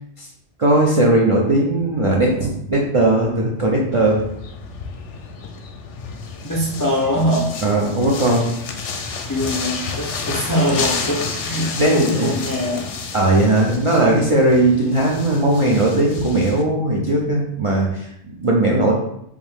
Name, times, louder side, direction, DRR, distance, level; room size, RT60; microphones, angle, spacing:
voice 1, 0.6-4.2 7.6-8.5 11.8-12.3 13.1-18.9, right 1 dB, 55° right, -2 dB, 0.3 m, -18 dB
sound 1, 3.9-16.6, left 5 dB, 75° left, 0.9 m, -31 dB
voice 2, 6.4-7.5 9.3-12.9, equal, 35° left, -4 dB, 0.3 m, -22 dB
3.5 x 2.6 x 3.4 m, 0.77 s
omnidirectional pair, 1.2 m